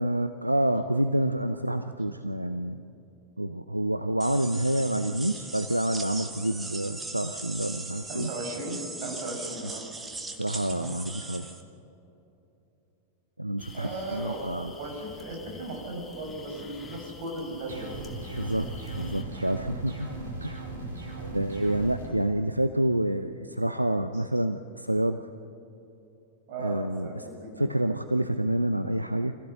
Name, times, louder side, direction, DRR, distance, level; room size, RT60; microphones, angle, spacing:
voice 1, 0.0-2.8 3.4-8.3 10.4-11.5 13.4-14.7 18.4-20.1 20.4-20.7 21.2-25.2 26.6-27.3 27.6-29.4, right 1 dB, 85° right, 9 dB, 0.6 m, -28 dB
sound 1, 4.2-11.6, right 3 dB, 10° right, 1.8 m, -39 dB
voice 2, 8.1-9.8 13.7-18.0 26.5-27.7, right 1 dB, 50° right, 1 dB, 6.3 m, -36 dB
sound 2, 13.6-19.2, left 4 dB, 15° left, 1.9 m, -47 dB
sound 3, 17.7-22.1, right 3 dB, 70° right, 4.7 m, -38 dB
26.0 x 16.5 x 6.8 m, 2.9 s
figure-of-eight pair, 90°, 0 cm